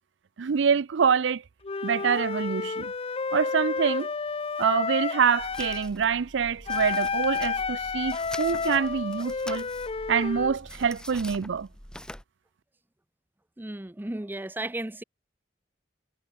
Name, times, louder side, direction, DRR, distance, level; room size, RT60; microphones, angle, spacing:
voice 1, 0.4-1.4 1.8-2.9 3.3-4.1 4.6-9.7 10.1-11.7, right 6 dB, 80° right, 0.5 m, -25 dB
Wind instrument woodwind instrument, 1.6-5.9 6.7-10.6, left 4 dB, 30° left, 0.6 m, -31 dB
sound 1, 5.4-12.2, left 1 dB, 5° left, 5.0 m, -44 dB
voice 2, 13.6-15.0, right 1 dB, 10° right, 0.6 m, -34 dB
head